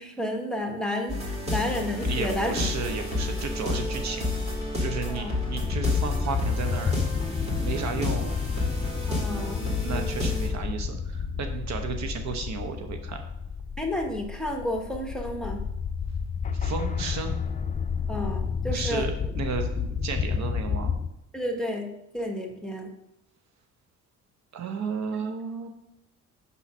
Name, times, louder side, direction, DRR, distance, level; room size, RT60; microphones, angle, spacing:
voice 1, 0.0-2.7 5.1-5.3 9.1-9.6 13.8-15.6 18.1-19.3 21.3-21.9 22.1-22.9 25.1-25.2, left 1 dB, ahead, 2 dB, 1.2 m, -31 dB
sound 1, 1.1-10.5, left 2 dB, 20° right, 2.0 m, -30 dB
voice 2, 2.1-4.3 4.8-7.0 7.6-8.3 9.8-13.2 16.5-17.4 18.7-19.7 20.0-20.9 24.5-25.7, right 5 dB, 65° right, 6 dB, 0.9 m, -33 dB
sound 2, 5.6-21.1, left 6 dB, 25° left, 0.5 m, -30 dB
5.6 x 4.2 x 6.0 m, 0.83 s
cardioid pair, 90°, 30 cm